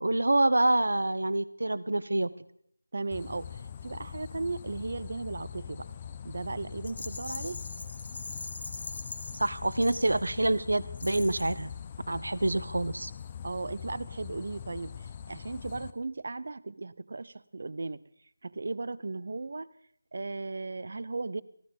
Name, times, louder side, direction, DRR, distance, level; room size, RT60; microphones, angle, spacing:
voice 1, 0.0-2.3 9.3-11.7 12.1-13.1, right 2 dB, 85° right, 16 dB, 0.8 m, -26 dB
voice 2, 2.9-3.6 3.8-5.9 6.2-7.6 13.4-15.0 15.3-18.0 18.4-19.7 20.1-21.4, right 3 dB, 45° right, 17 dB, 0.5 m, -36 dB
sound 1, 3.1-15.9, left 8 dB, 20° left, 0.5 m, -43 dB
Rattle, 6.8-10.5 10.9-11.6, left 3 dB, 45° left, 1.0 m, -42 dB
14.5 x 13.0 x 5.2 m, 0.69 s
figure-of-eight pair, 175°, 0 cm